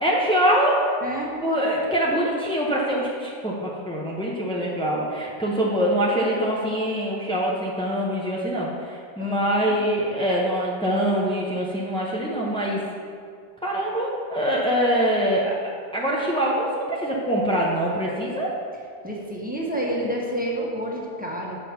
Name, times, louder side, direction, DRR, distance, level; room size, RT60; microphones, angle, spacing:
voice 1, 0.0-0.8 1.4-12.8 13.6-15.6 15.9-18.5, equal, 10° left, -5 dB, 0.3 m, -24 dB
voice 2, 1.0-1.3 9.2-9.8 19.0-21.6, right 1 dB, 5° right, -4 dB, 0.8 m, -29 dB
7.5 x 5.3 x 5.8 m, 2.1 s
omnidirectional pair, 1.8 m